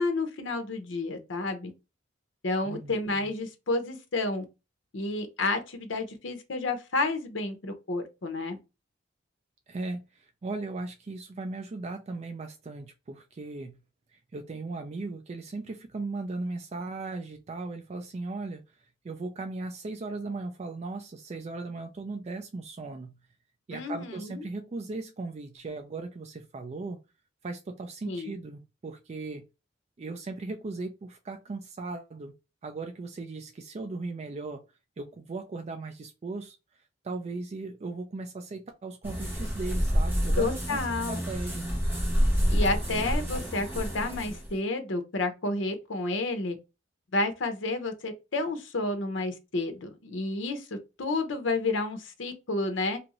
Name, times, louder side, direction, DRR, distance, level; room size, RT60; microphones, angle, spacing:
voice 1, 0.0-1.7 2.4-4.4 4.9-8.6 23.7-24.4 28.1-28.3 40.4-41.2 42.5-46.6 47.1-53.0, left 2 dB, 75° left, 0.7 m, -30 dB
voice 2, 2.6-3.0 9.7-13.8 14.3-18.6 19.0-23.2 23.7-27.0 27.4-29.5 30.0-32.3 32.6-34.6 35.0-36.6 37.0-40.8 41.1-41.7, right 3 dB, 35° right, 0.4 m, -37 dB
sound 1, 39.0-44.5, equal, 10° right, 1.1 m, -28 dB
2.7 x 2.5 x 2.9 m
head